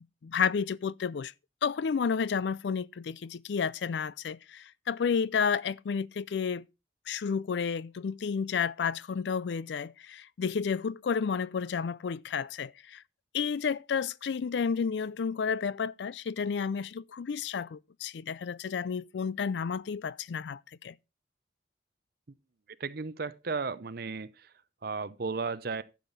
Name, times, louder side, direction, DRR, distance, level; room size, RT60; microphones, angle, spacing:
voice 1, 0.2-1.3 1.6-6.6 7.1-13.0 13.3-20.9, left 6 dB, 75° left, 0.4 m, -31 dB
voice 2, 22.8-24.3 24.8-25.8, right 4 dB, 60° right, 0.7 m, -34 dB
11.5 x 7.3 x 4.1 m
head